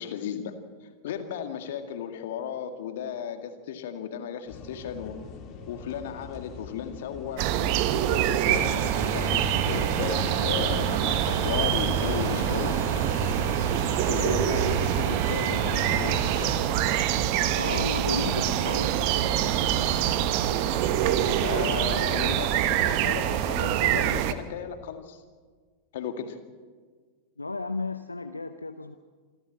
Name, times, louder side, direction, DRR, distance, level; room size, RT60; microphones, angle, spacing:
voice 1, 0.0-5.2 5.7-7.5 8.1-12.8 13.9-16.6 20.6-25.2 25.9-26.4, left 8 dB, 55° left, 7 dB, 2.0 m, -35 dB
sound 1, 4.5-14.9, left 5 dB, 35° left, 2.3 m, -43 dB
sound 2, 7.4-24.3, right 11 dB, 45° right, 1.1 m, -25 dB
sound 3, 8.4-16.6, equal, 60° right, 5.4 m, -35 dB
voice 2, 14.1-14.5 17.5-19.1 27.4-28.9, left 3 dB, 80° left, 9 dB, 0.7 m, -33 dB
27.0 x 12.5 x 7.7 m, 1.5 s
figure-of-eight pair, 90°, 0 cm